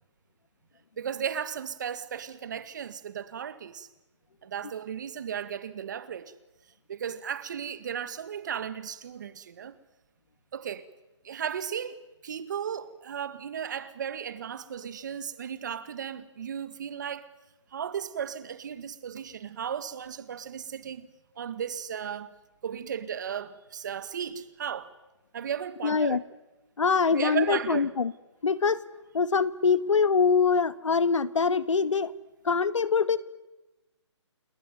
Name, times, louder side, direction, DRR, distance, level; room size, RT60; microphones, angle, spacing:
voice 1, 1.0-3.9 4.4-6.3 6.9-9.8 10.5-10.9 11.2-17.3 17.7-21.1 21.4-22.4 22.6-24.9 25.3-26.2 27.1-27.9, right 8 dB, 40° right, 1.7 m, -35 dB
voice 2, 25.8-26.2 26.8-28.1 28.4-28.8 29.1-32.1 32.4-33.2, left 5 dB, 80° left, 1.7 m, -24 dB
29.0 x 20.0 x 9.3 m
hypercardioid pair, 170°, 16 cm